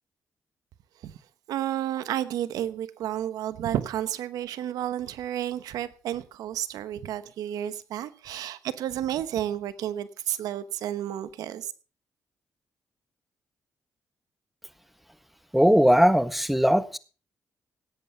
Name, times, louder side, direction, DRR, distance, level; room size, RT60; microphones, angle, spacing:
voice 1, 1.5-11.7, right 11 dB, 85° right, 14 dB, 1.0 m, -31 dB
voice 2, 15.5-17.0, equal, ahead, 13 dB, 1.4 m, -19 dB
17.5 x 8.1 x 5.5 m, 0.37 s
supercardioid pair, 55°, 6 cm